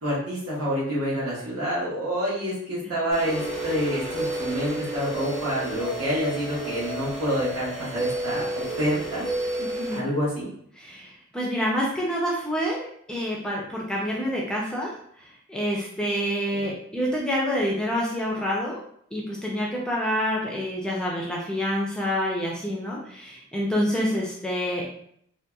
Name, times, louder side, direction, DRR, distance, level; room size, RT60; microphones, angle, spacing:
voice 1, 0.0-9.2 9.9-10.5 16.5-16.7, equal, 90° right, -7 dB, 1.4 m, -27 dB
sound 1, 3.1-10.0, right 2 dB, 25° right, 1.3 m, -31 dB
voice 2, 9.6-10.0 10.8-14.9 15.5-18.8 19.1-24.8, equal, 5° left, -3 dB, 0.4 m, -27 dB
2.8 x 2.5 x 2.3 m, 0.67 s
head